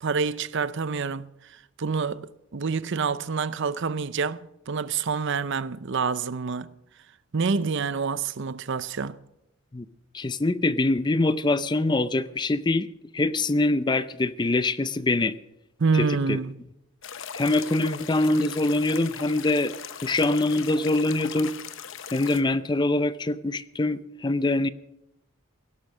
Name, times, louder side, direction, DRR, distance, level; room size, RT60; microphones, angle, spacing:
voice 1, 0.0-6.7 7.3-9.2 15.8-16.6, right 5 dB, 55° right, 0.6 m, -27 dB
voice 2, 10.1-12.9 13.1-15.4 15.9-16.4 17.3-19.7 20.0-21.5 22.1-24.7, left 2 dB, 20° left, 0.4 m, -24 dB
sound 1, 17.0-22.4, left 7 dB, 60° left, 0.9 m, -39 dB
17.0 x 11.5 x 6.5 m
head